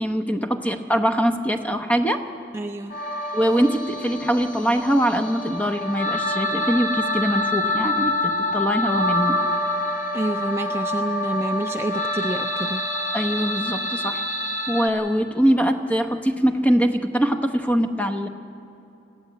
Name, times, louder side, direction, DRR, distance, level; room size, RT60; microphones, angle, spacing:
voice 1, 0.0-2.2 3.3-9.4 13.1-14.2 14.7-18.3, equal, 10° left, 7 dB, 0.8 m, -22 dB
voice 2, 2.5-3.0 10.1-12.9, right 1 dB, 15° right, 6 dB, 0.4 m, -28 dB
sound 1, 2.9-14.9, left 1 dB, 40° left, 2.1 m, -26 dB
20.0 x 15.0 x 9.4 m, 2.9 s
head